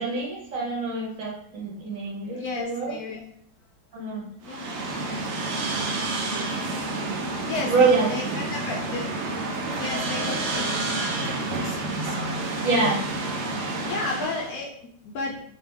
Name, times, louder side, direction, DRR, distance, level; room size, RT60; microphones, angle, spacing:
voice 1, 0.0-2.9 3.9-4.2 7.7-8.4 12.6-13.0, right 3 dB, 55° right, -3 dB, 1.1 m, -25 dB
voice 2, 2.3-3.2 4.0-5.0 7.2-9.2 9.6-12.7 13.8-15.4, left 3 dB, 70° left, -1 dB, 1.0 m, -34 dB
sound 1, 4.4-14.6, right 2 dB, 85° right, 0.6 m, -29 dB
3.7 x 2.9 x 3.5 m, 0.68 s
omnidirectional pair, 1.9 m